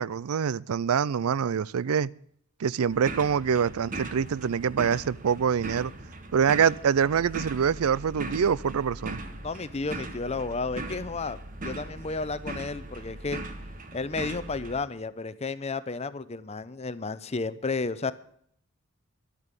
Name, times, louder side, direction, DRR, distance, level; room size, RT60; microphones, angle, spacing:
voice 1, 0.0-2.1 2.6-5.9 6.3-9.2, right 7 dB, 90° right, 0.4 m, -25 dB
sound 1, 2.9-14.8, right 2 dB, 40° right, 1.2 m, -39 dB
voice 2, 9.4-11.4 11.6-13.4 13.9-18.1, left 3 dB, 30° left, 0.6 m, -32 dB
11.5 x 8.8 x 8.2 m
head